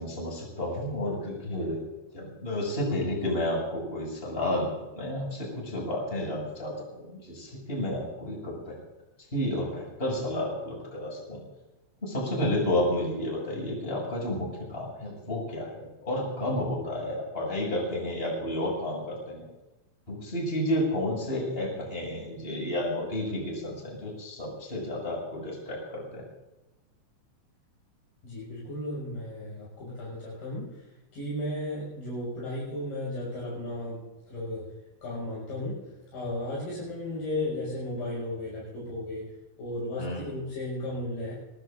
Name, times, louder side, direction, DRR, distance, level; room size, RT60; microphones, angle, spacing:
voice 1, 0.0-1.8 2.1-8.8 9.3-11.4 12.0-19.4 20.1-26.2 40.0-40.3, left 1 dB, 10° left, -2 dB, 6.9 m, -31 dB
voice 2, 28.2-34.7 35.0-39.3 39.6-41.3, left 1 dB, 50° left, -6 dB, 7.6 m, -35 dB
25.0 x 20.5 x 2.6 m, 1.1 s
omnidirectional pair, 5.6 m